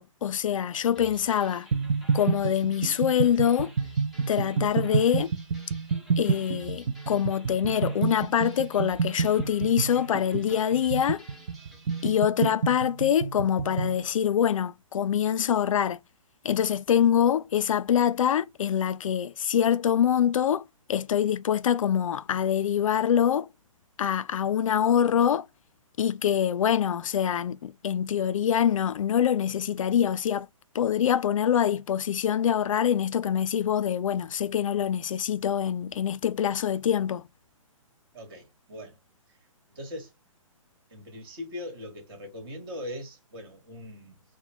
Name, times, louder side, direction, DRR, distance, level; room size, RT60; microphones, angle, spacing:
voice 1, 0.0-1.7 2.1-3.7 4.3-5.3 6.2-11.2 12.0-16.0 16.4-20.6 20.9-23.5 24.0-25.5 26.0-30.5 30.7-37.2, left 9 dB, 70° left, 0.4 m, -25 dB
sound 1, 1.0-12.2, left 1 dB, ahead, 0.5 m, -51 dB
sound 2, 1.7-14.0, right 5 dB, 70° right, 0.4 m, -28 dB
voice 2, 38.1-39.0 39.3-39.4 39.7-40.1 40.9-44.2, left 1 dB, 45° right, 2.0 m, -40 dB
4.7 x 2.2 x 3.5 m
hypercardioid pair, 160°, 18 cm